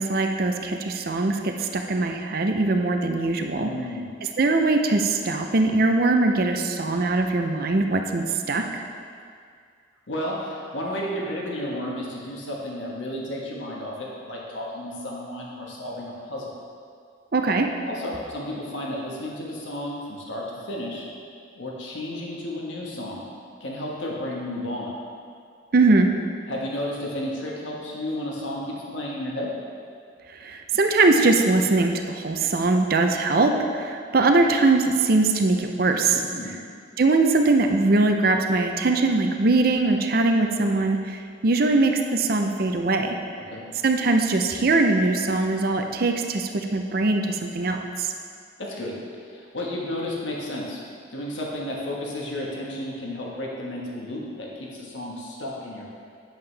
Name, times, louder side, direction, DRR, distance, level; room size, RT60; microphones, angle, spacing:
voice 1, 0.0-3.7 4.4-8.6 17.3-17.7 25.7-26.1 30.3-36.2 37.0-43.2 43.8-48.1, right 3 dB, 50° right, 4 dB, 0.5 m, -21 dB
voice 2, 3.5-4.1 10.1-16.5 17.8-21.1 21.5-23.2 23.6-24.9 26.5-29.5 36.1-36.6 43.5-43.6 48.6-48.9 49.3-50.8 51.1-55.9, left 1 dB, 85° left, -3 dB, 1.4 m, -32 dB
8.8 x 7.6 x 3.4 m, 2.2 s
head